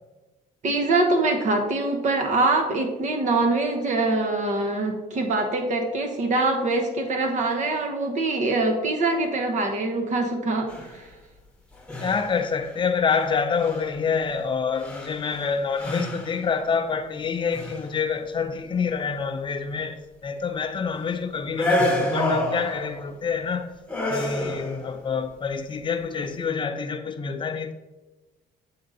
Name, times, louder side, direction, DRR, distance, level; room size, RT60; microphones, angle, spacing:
voice 1, 0.6-11.1, right 2 dB, 45° right, 1.0 m, -24 dB
sound 1, 10.7-11.0 11.8-12.5 13.2-13.3 13.6-13.9 14.8-15.5 15.8-16.5 17.4-17.9 21.5-23.0 23.9-24.9, left 1 dB, 5° left, 1.1 m, -27 dB
voice 2, 12.0-23.7 24.1-27.7, left 5 dB, 30° left, 0.6 m, -27 dB
7.7 x 3.8 x 4.0 m
cardioid pair, 110°, 17 cm